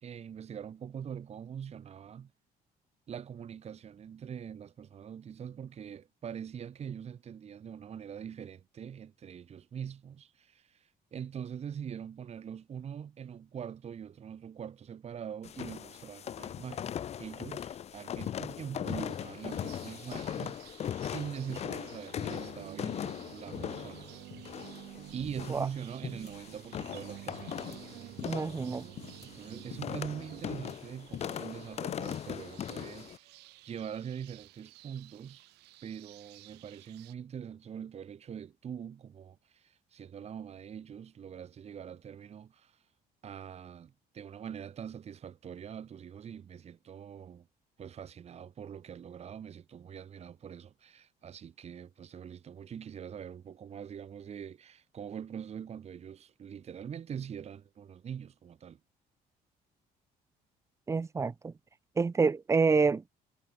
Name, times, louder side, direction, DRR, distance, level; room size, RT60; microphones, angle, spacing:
voice 1, 0.0-2.3 3.1-24.1 25.1-27.8 29.2-33.4 33.6-35.5 35.8-42.8 43.2-47.5 47.8-58.8, right 8 dB, 40° right, 1.1 m, -43 dB
sound 1, 15.4-33.2, left 9 dB, 40° left, 0.5 m, -39 dB
sound 2, 18.8-37.2, right 20 dB, 90° right, 1.3 m, -57 dB
sound 3, 22.2-30.4, right 14 dB, 70° right, 2.3 m, -49 dB
voice 2, 28.2-28.9 60.9-61.5 62.0-63.0, right 4 dB, 15° right, 0.4 m, -27 dB
cardioid pair, 110°, 17 cm